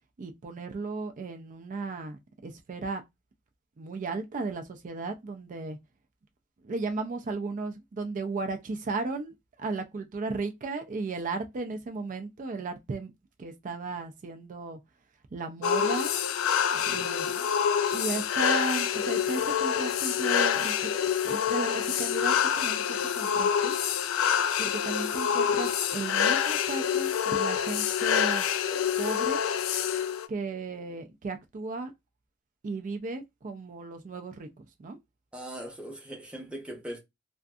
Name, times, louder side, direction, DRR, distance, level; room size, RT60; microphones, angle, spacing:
voice 1, 0.2-3.0 3.8-5.8 6.6-13.1 13.4-14.8 15.3-16.1 16.9-17.5 17.9-20.9 21.2-23.8 24.6-28.5 29.0-29.4 30.3-31.9 32.6-35.0, right 3 dB, 40° right, 0.4 m, -35 dB
sound 1, 15.6-30.3, left 8 dB, 85° left, 0.3 m, -27 dB
voice 2, 16.7-17.1 35.3-37.0, right 1 dB, 5° right, 0.8 m, -40 dB
2.5 x 2.5 x 2.3 m
head